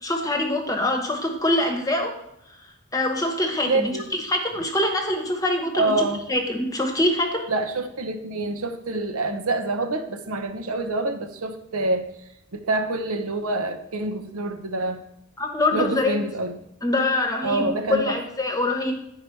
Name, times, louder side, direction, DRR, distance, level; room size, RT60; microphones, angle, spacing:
voice 1, 0.0-2.2 2.9-7.5 15.4-16.2 16.8-18.9, left 1 dB, 15° left, 3 dB, 1.0 m, -24 dB
voice 2, 3.7-4.1 5.7-6.2 7.5-12.1 12.6-15.0 15.7-16.5 17.4-18.2, right 2 dB, 85° right, 6 dB, 0.9 m, -26 dB
10.0 x 4.8 x 4.6 m, 0.80 s
head